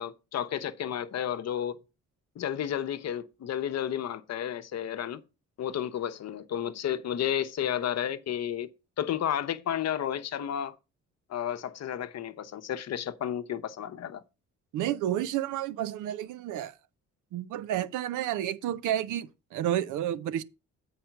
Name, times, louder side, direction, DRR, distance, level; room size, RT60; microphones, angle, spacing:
voice 1, 0.0-1.8 2.4-5.2 5.6-8.7 9.0-10.8 11.3-14.2, left 10 dB, 60° left, 0.8 m, -32 dB
voice 2, 14.7-16.8 17.3-20.4, right 11 dB, 85° right, 0.6 m, -31 dB
7.8 x 4.9 x 5.8 m
cardioid pair, 90°, 30 cm